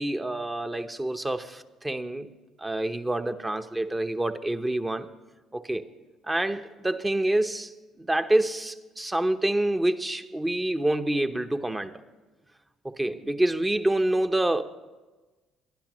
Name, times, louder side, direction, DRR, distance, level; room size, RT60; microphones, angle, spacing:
voice 1, 0.0-2.3 2.6-5.1 5.5-5.8 6.3-7.7 8.0-11.9 12.8-14.6, right 1 dB, 15° right, 8 dB, 0.9 m, -27 dB
22.0 x 11.5 x 3.1 m, 1.2 s
hypercardioid pair, 60°, 0 cm